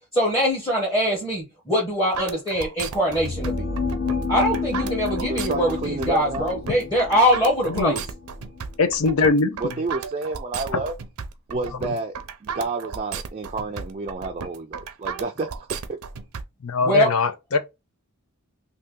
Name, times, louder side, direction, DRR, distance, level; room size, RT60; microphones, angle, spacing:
voice 1, 0.1-3.7 4.3-8.0 16.8-17.1, equal, 15° left, 1.1 m, -23 dB
sound 1, 2.1-16.4, right 6 dB, 80° right, 0.5 m, -34 dB
sound 2, 3.0-8.9, left 4 dB, 50° left, 1.2 m, -30 dB
voice 2, 5.2-6.6 9.6-10.9 11.5-12.1 12.4-16.0, right 3 dB, 30° right, 0.4 m, -30 dB
voice 3, 8.8-9.7 10.7-10.8 11.8-11.9 16.6-17.6, left 4 dB, 75° left, 0.6 m, -21 dB
2.8 x 2.7 x 3.6 m
head